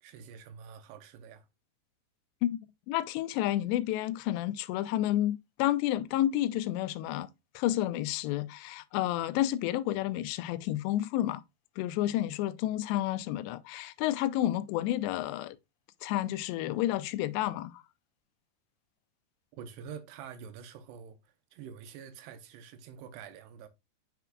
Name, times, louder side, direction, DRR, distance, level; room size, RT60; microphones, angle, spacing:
voice 1, 0.0-1.5 19.5-21.2 21.5-23.7, right 7 dB, 80° right, 2.8 m, -46 dB
voice 2, 2.9-7.3 7.6-11.4 11.8-15.6 16.0-17.8, left 13 dB, 90° left, 2.8 m, -30 dB
8.0 x 5.7 x 2.3 m
omnidirectional pair, 4.9 m